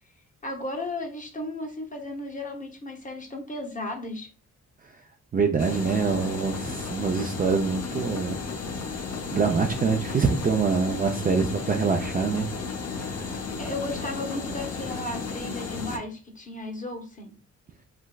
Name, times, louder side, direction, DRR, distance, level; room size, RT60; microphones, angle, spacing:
voice 1, 0.4-4.3 13.6-17.3, left 2 dB, 25° left, 3 dB, 0.9 m, -35 dB
voice 2, 5.3-8.4 8.9-9.0 9.3-12.5 13.0-13.3, right 5 dB, 30° right, 3 dB, 0.4 m, -25 dB
sound 1, 5.6-16.0, left 4 dB, 55° left, 0.7 m, -34 dB
3.3 x 3.0 x 2.3 m, 0.35 s
cardioid pair, 85°, 30 cm